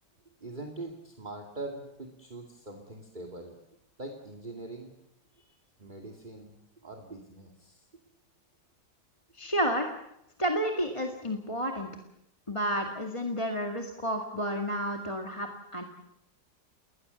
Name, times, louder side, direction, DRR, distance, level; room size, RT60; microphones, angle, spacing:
voice 1, 0.4-3.5 4.0-4.9 5.3-6.5 6.8-7.8, right 2 dB, 25° right, 2 dB, 2.6 m, -43 dB
voice 2, 9.3-9.9 10.4-11.9 12.5-15.8, equal, 15° left, 3 dB, 2.0 m, -31 dB
30.0 x 20.5 x 7.1 m, 0.81 s
omnidirectional pair, 1.9 m